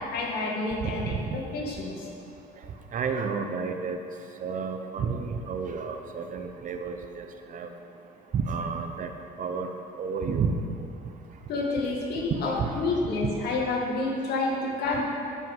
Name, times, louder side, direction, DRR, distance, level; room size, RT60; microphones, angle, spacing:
voice 1, 0.0-2.1 11.5-15.0, left 3 dB, 70° left, -2 dB, 2.0 m, -29 dB
voice 2, 0.8-1.3 2.9-4.0 4.4-7.3 7.5-7.7 8.3-9.1 9.4-10.5 12.5-12.8 13.2-13.3, right 5 dB, 50° right, 6 dB, 0.8 m, -31 dB
12.5 x 5.6 x 5.4 m, 2.7 s
cardioid pair, 110°, 17 cm